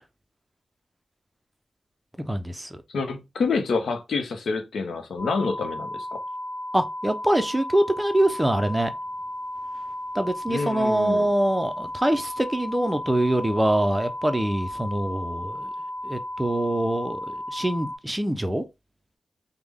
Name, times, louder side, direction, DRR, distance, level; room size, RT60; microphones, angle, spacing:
voice 1, 2.2-2.8 6.7-8.9 10.1-15.7 16.0-18.6, right 1 dB, 10° right, 0.4 m, -24 dB
voice 2, 2.9-6.2 10.5-11.3, left 4 dB, 75° left, 0.6 m, -27 dB
sound 1, 5.2-18.0, left 1 dB, 45° left, 1.1 m, -34 dB
3.2 x 2.1 x 3.5 m
cardioid pair, 85°, 0 cm